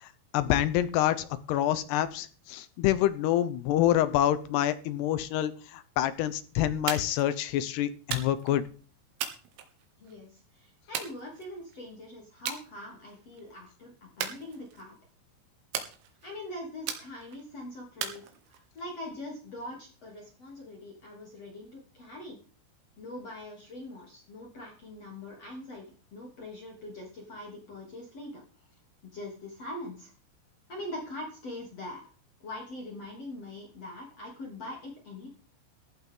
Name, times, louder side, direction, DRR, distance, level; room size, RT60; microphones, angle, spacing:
voice 1, 0.0-8.6, left 12 dB, 80° left, 12 dB, 2.4 m, -27 dB
sound 1, 6.9-7.3 8.1-8.6 9.2-10.1 10.9-11.8 12.5-12.7 13.1-13.4 14.2-15.0 15.7-16.4 16.9-17.4 18.0-18.8, right 9 dB, 75° right, 4.2 m, -37 dB
voice 2, 10.0-14.9 16.2-22.4 23.0-25.8 26.1-28.4 29.1-30.1 30.7-32.1 32.4-35.3, left 1 dB, 35° left, -1 dB, 3.4 m, -42 dB
15.0 x 11.5 x 3.8 m, 0.39 s
omnidirectional pair, 5.8 m